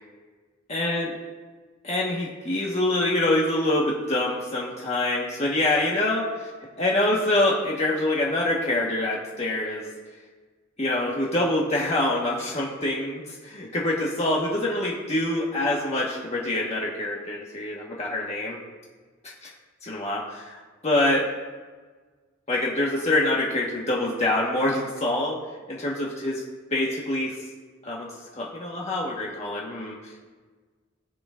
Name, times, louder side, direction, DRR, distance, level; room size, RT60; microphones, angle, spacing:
voice 1, 0.7-1.1 1.8-6.5 6.8-9.9 10.8-18.6 19.4-19.5 19.8-21.3 22.5-25.4 25.7-26.4 26.7-27.4 27.8-28.1 28.3-30.2, left 1 dB, 35° left, -4 dB, 1.3 m, -25 dB
19.5 x 8.0 x 2.5 m, 1.4 s
head